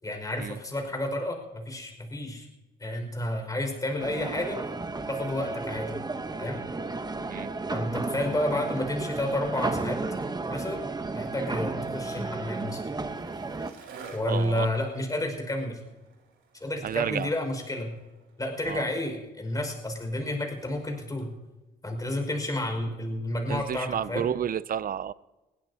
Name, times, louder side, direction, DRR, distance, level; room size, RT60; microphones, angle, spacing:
voice 1, 0.0-2.5 2.8-4.6 5.1-5.9 6.4-6.6 7.7-10.0 10.5-10.8 11.1-12.8 14.1-15.8 16.6-17.9 18.4-21.3 21.8-24.3, left 1 dB, 20° left, 3 dB, 5.4 m, -30 dB
sound 1, 4.0-13.7, right 3 dB, 20° right, 1.0 m, -33 dB
Skateboard, 10.8-21.3, right 5 dB, 75° right, 3.6 m, -52 dB
voice 2, 14.3-14.7 16.8-17.3 18.7-18.9 23.5-25.1, right 9 dB, 45° right, 19 dB, 0.5 m, -31 dB
21.0 x 16.5 x 2.8 m, 1.1 s
cardioid pair, 90°, 20 cm